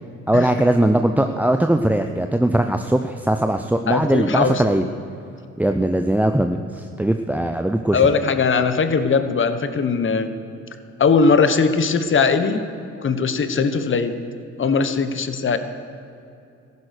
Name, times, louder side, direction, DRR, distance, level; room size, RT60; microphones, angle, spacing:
voice 1, 0.3-4.8 5.6-8.0, right 1 dB, 5° right, 6 dB, 0.6 m, -20 dB
voice 2, 3.9-4.6 7.9-10.3 11.0-12.6 13.0-14.1 14.6-15.6, left 5 dB, 40° left, 10 dB, 1.2 m, -19 dB
14.5 x 11.0 x 6.7 m, 2.6 s
cardioid pair, 90°, 30 cm